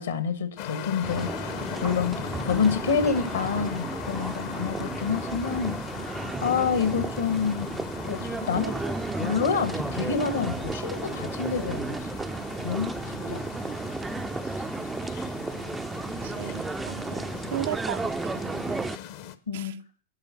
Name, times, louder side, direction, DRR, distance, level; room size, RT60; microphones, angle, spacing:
voice 1, 0.0-1.5 1.8-7.7 8.0-12.1 12.6-13.0 13.3-13.4 19.5-19.7, left 6 dB, 70° left, 11 dB, 1.5 m, -28 dB
sound 1, 0.6-19.4, left 10 dB, 50° left, 0.9 m, -39 dB
sound 2, 1.0-19.0, right 3 dB, 10° right, 0.5 m, -33 dB
voice 2, 13.1-13.7 16.2-18.9 19.5-19.8, right 12 dB, 55° right, 11 dB, 0.5 m, -37 dB
11.5 x 5.0 x 7.5 m, 0.43 s
figure-of-eight pair, 90°, 0 cm